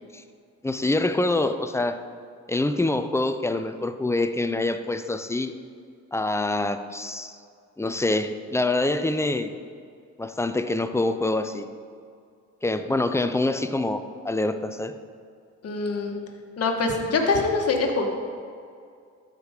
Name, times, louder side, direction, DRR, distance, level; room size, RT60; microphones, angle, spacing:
voice 1, 0.6-2.0 2.5-5.5 6.1-7.4 7.8-9.5 10.2-11.7 12.6-15.0, left 2 dB, 10° left, 9 dB, 0.5 m, -25 dB
voice 2, 15.6-16.1 16.6-18.1, left 3 dB, 55° left, 2 dB, 1.4 m, -24 dB
13.0 x 5.0 x 5.1 m, 2.3 s
cardioid pair, 90°, 30 cm